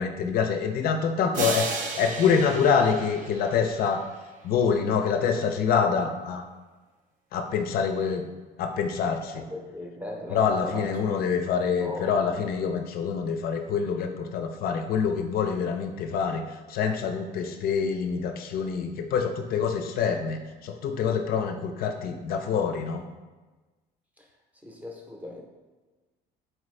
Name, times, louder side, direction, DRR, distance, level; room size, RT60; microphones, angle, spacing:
voice 1, 0.0-4.1 4.4-6.4 7.3-8.2 8.6-9.4 10.3-16.4 16.7-23.1, left 6 dB, 65° left, 6 dB, 0.4 m, -26 dB
sound 1, 1.3-4.2, right 4 dB, 50° right, 0.5 m, -34 dB
voice 2, 9.4-11.0 11.8-12.1 24.2-24.3 24.6-25.4, left 1 dB, 10° right, 0 dB, 0.6 m, -38 dB
4.4 x 2.5 x 3.2 m, 1.3 s
cardioid pair, 110°, 17 cm